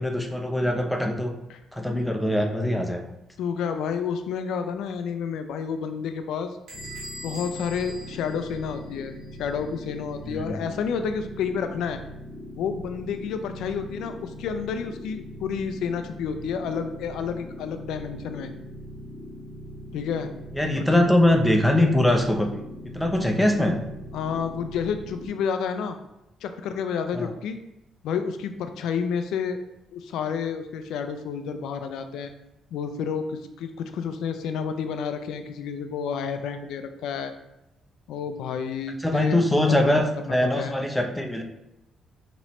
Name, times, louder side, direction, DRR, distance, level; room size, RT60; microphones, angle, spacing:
voice 1, 0.0-1.3 1.7-3.1 10.2-10.8 20.5-22.6 22.9-23.8 27.1-27.3 39.0-41.4, left 1 dB, 5° left, 3 dB, 0.5 m, -22 dB
voice 2, 3.4-6.6 7.2-12.0 12.6-18.5 19.9-20.3 20.7-21.0 24.1-26.0 26.4-27.6 28.0-29.6 29.9-32.3 32.7-37.3 38.1-39.4 39.8-40.0 40.3-40.8, left 6 dB, 85° left, 8 dB, 0.3 m, -30 dB
sound 1, 6.7-25.3, equal, 35° left, 1.2 m, -41 dB
Bell / Squeak, 6.7-9.2, equal, 80° right, 1.4 m, -42 dB
5.5 x 3.0 x 3.0 m, 0.88 s
cardioid pair, 135°, 0 cm